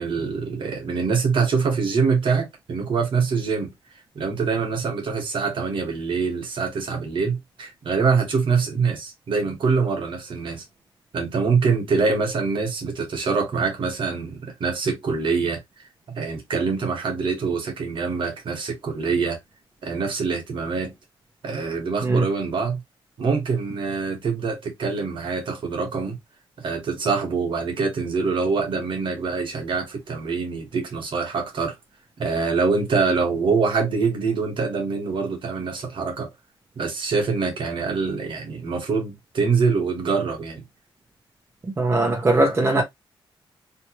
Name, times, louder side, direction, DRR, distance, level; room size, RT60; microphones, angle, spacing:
voice 1, 0.0-3.7 4.1-10.6 11.1-15.6 16.1-19.4 19.8-20.9 21.4-22.8 23.2-26.2 26.6-31.7 32.2-36.3 36.8-40.6, right 5 dB, 65° right, 1.5 m, -24 dB
voice 2, 41.8-42.8, right 2 dB, 25° right, 1.1 m, -20 dB
3.2 x 3.0 x 2.9 m
cardioid pair, 115°, 9 cm